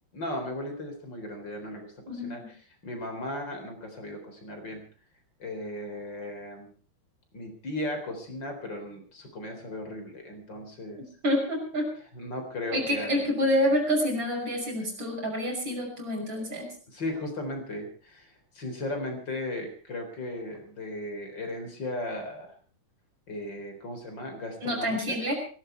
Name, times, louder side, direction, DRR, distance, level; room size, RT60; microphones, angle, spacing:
voice 1, 0.1-4.8 5.4-6.7 7.3-11.0 12.1-13.2 16.9-22.5 23.3-25.2, left 1 dB, 55° left, 5 dB, 4.6 m, -36 dB
voice 2, 11.2-11.8 12.7-16.7 24.6-25.3, equal, 60° right, 2 dB, 6.5 m, -27 dB
18.0 x 17.0 x 4.6 m, 0.40 s
omnidirectional pair, 2.4 m